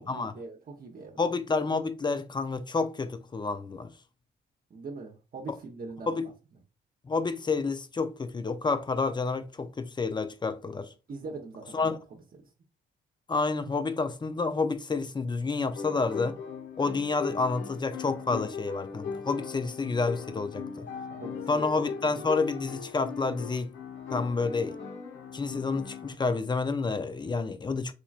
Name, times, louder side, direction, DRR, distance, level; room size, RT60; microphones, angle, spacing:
voice 1, 0.0-1.3 4.7-6.2 11.1-12.2 21.1-21.7, right 3 dB, 45° right, 0.9 m, -42 dB
voice 2, 1.2-3.9 6.1-6.3 7.0-10.9 11.7-12.0 13.3-16.4 16.8-20.9 21.5-23.7 24.1-24.8 25.3-27.9, left 4 dB, 20° left, 0.5 m, -29 dB
sound 1, 15.7-26.1, left 5 dB, 70° left, 1.0 m, -39 dB
4.1 x 2.9 x 2.4 m
cardioid pair, 90°, 20 cm